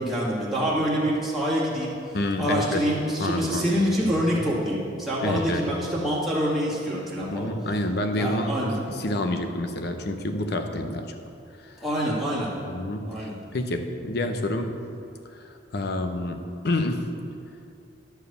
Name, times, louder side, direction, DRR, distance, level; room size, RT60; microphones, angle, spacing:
voice 1, 0.0-2.0 2.4-7.5 8.1-8.8 11.8-12.5 13.1-13.3, equal, ahead, -9 dB, 1.9 m, -26 dB
voice 2, 2.1-2.9 3.2-4.3 5.2-5.8 7.3-11.1 11.6-11.8 12.7-14.8 15.3-17.1, left 1 dB, 60° left, 6 dB, 0.8 m, -29 dB
11.5 x 4.7 x 6.8 m, 2.5 s
head